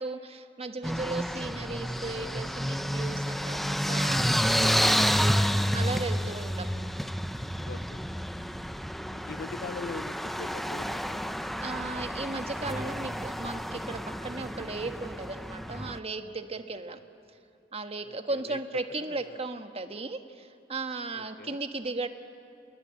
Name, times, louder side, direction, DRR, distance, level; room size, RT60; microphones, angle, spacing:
voice 1, 0.0-6.7 11.6-17.0 17.7-22.1, right 3 dB, 35° right, 8 dB, 1.4 m, -36 dB
sound 1, 0.8-16.0, equal, ahead, 0.7 m, -30 dB
voice 2, 6.3-6.7 7.6-8.1 9.1-11.4 18.0-18.6 18.9-19.4 21.1-21.6, left 4 dB, 50° left, 15 dB, 0.7 m, -43 dB
28.5 x 21.5 x 8.7 m, 2.6 s
head